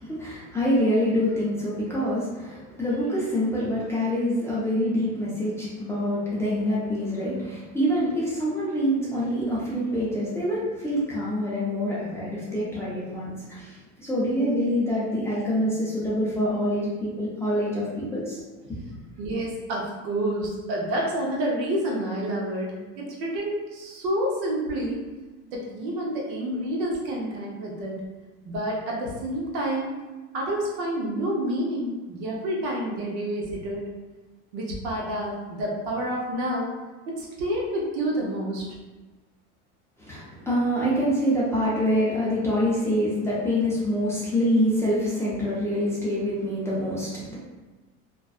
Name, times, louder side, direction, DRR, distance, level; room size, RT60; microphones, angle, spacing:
voice 1, 0.0-18.4 40.0-47.4, equal, 10° left, -8 dB, 0.4 m, -26 dB
voice 2, 19.2-25.0 25.5-28.0 28.4-29.9 30.3-33.9 34.5-36.7 37.1-38.6, right 1 dB, 75° right, -2 dB, 0.8 m, -29 dB
2.5 x 2.2 x 2.3 m, 1.2 s
supercardioid pair, 135°, 34 cm